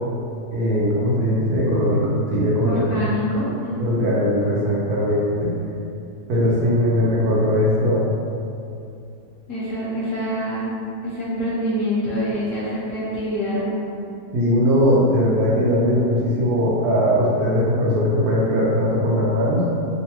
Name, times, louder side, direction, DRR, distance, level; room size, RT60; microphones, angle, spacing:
voice 1, 0.5-2.8 3.8-5.5 6.3-8.1 14.3-19.7, equal, 70° right, -6 dB, 1.0 m, -19 dB
voice 2, 2.6-4.1 9.5-10.7 11.0-13.6, equal, 60° left, -9 dB, 1.0 m, -25 dB
3.1 x 2.1 x 2.9 m, 2.5 s
omnidirectional pair, 1.8 m